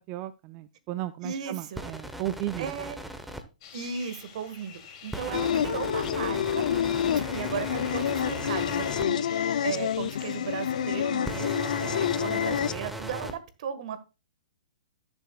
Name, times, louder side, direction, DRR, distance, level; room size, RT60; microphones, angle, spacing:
voice 1, 0.1-2.7, right 14 dB, 30° right, 0.4 m, -34 dB
voice 2, 1.2-1.9 2.6-3.0 3.7-6.7 7.3-14.0, right 7 dB, 60° right, 1.5 m, -36 dB
sound 1, 1.7-3.4 5.1-9.0 11.2-13.3, right 1 dB, 5° right, 0.9 m, -38 dB
sound 2, 3.6-12.1, left 8 dB, 45° left, 2.7 m, -48 dB
sound 3, 5.3-12.7, left 9 dB, 70° left, 0.4 m, -28 dB
16.5 x 7.0 x 2.3 m
hypercardioid pair, 135°, 4 cm